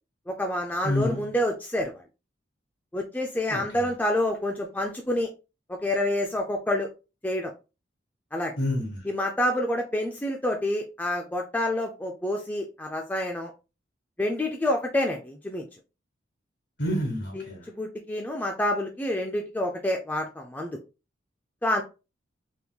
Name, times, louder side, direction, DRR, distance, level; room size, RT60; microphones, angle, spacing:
voice 1, 0.3-2.0 2.9-5.3 5.7-6.9 7.2-7.5 8.3-8.6 9.0-13.5 14.2-15.7 17.4-17.5 17.8-20.8 21.6-21.8, left 1 dB, 10° left, 0.3 m, -28 dB
voice 2, 0.8-1.2 3.5-3.9 8.6-9.0 16.8-17.6, left 1 dB, 60° left, 1.8 m, -28 dB
3.5 x 2.9 x 2.3 m
head